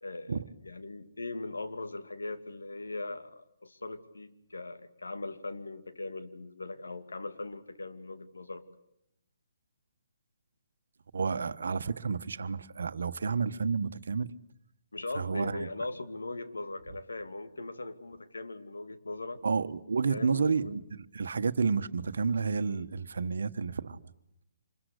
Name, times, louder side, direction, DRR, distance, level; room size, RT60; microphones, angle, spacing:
voice 1, 0.0-0.4 0.6-8.6 14.9-19.4 20.1-20.7, left 2 dB, 90° left, 2.4 m, -40 dB
voice 2, 11.1-14.3 15.1-15.7 19.4-24.0, right 5 dB, 70° right, 1.4 m, -30 dB
26.5 x 22.0 x 8.3 m
hypercardioid pair, 145°, 0 cm